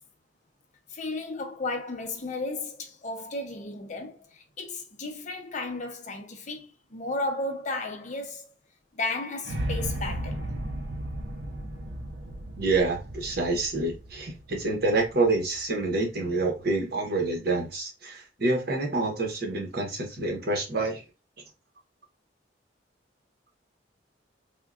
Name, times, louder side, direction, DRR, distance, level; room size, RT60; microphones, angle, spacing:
voice 1, 0.9-8.5 8.9-10.5, left 2 dB, 40° left, 0.6 m, -34 dB
sound 1, 9.4-15.6, right 1 dB, 80° right, 0.6 m, -35 dB
voice 2, 12.6-21.0, right 2 dB, 60° right, 0.9 m, -27 dB
3.5 x 2.2 x 2.4 m
head